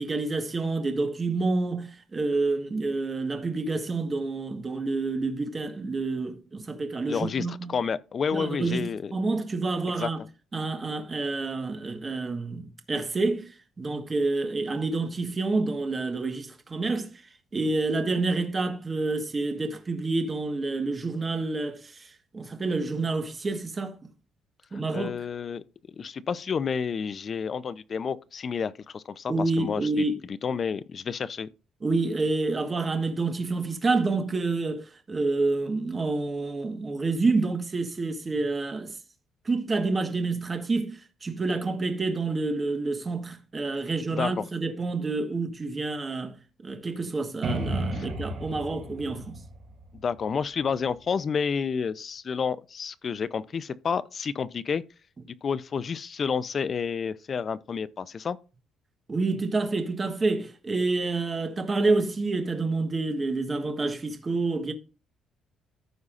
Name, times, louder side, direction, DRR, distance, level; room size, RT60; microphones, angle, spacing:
voice 1, 0.0-7.8 8.3-10.2 10.5-17.2 17.5-24.0 24.7-25.1 29.3-30.2 31.8-39.0 39.4-49.4 59.1-64.7, right 3 dB, 20° right, 1.4 m, -28 dB
voice 2, 7.1-9.1 10.0-10.1 24.7-31.5 44.1-44.5 47.9-48.1 50.0-54.8 55.3-58.4, left 6 dB, 35° left, 0.5 m, -30 dB
sound 1, 47.4-51.1, right 1 dB, 50° right, 5.2 m, -34 dB
14.5 x 5.5 x 2.5 m
cardioid pair, 150°, 0 cm